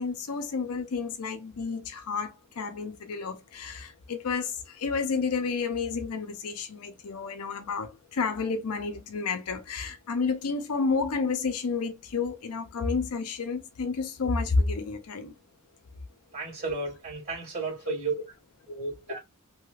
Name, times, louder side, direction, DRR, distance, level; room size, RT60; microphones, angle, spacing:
voice 1, 0.0-15.3 17.9-18.0, left 4 dB, 80° left, 0.6 m, -30 dB
voice 2, 16.3-18.1 18.7-19.2, right 4 dB, 40° right, 1.6 m, -33 dB
2.8 x 2.3 x 3.1 m
head